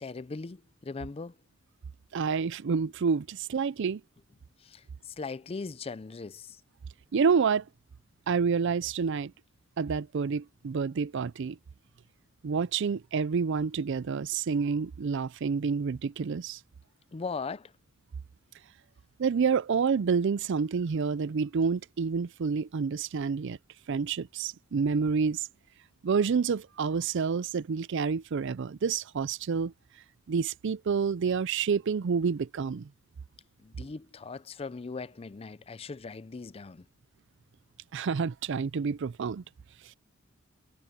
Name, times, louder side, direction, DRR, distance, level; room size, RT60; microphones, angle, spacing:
voice 1, 0.0-1.3 4.6-6.6 17.1-17.7 33.6-36.8, left 4 dB, 30° left, 0.4 m, -39 dB
voice 2, 2.1-4.0 7.1-7.6 8.3-9.3 9.8-11.6 12.4-16.6 19.2-23.6 23.9-25.5 26.0-29.7 30.3-32.9 37.9-39.4, right 5 dB, 60° right, 0.4 m, -28 dB
head